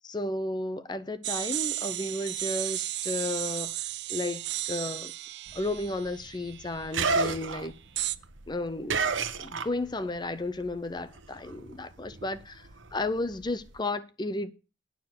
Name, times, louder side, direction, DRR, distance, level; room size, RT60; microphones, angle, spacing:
voice 1, 0.0-5.1 5.5-7.7 8.5-9.0 9.4-14.5, left 2 dB, 20° left, 0.5 m, -33 dB
sound 1, 1.2-6.9 8.0-8.2, right 15 dB, 60° right, 0.5 m, -34 dB
sound 2, 5.5-10.2 10.4-13.8, right 4 dB, 75° right, 1.0 m, -33 dB
9.3 x 6.7 x 7.6 m
head